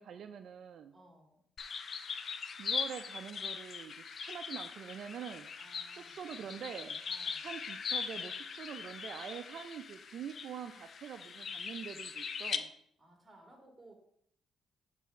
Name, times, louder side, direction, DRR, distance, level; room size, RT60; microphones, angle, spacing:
voice 1, 0.0-1.0 2.6-5.5 5.9-7.0 7.4-12.7, right 8 dB, 65° right, 8 dB, 0.4 m, -45 dB
voice 2, 0.9-1.5 5.6-6.2 7.0-7.5 12.5-13.9, right 1 dB, 15° right, 2 dB, 2.1 m, -60 dB
sound 1, 1.6-12.6, left 6 dB, 50° left, 0.5 m, -40 dB
8.2 x 3.4 x 5.6 m, 0.70 s
cardioid pair, 90°, 0 cm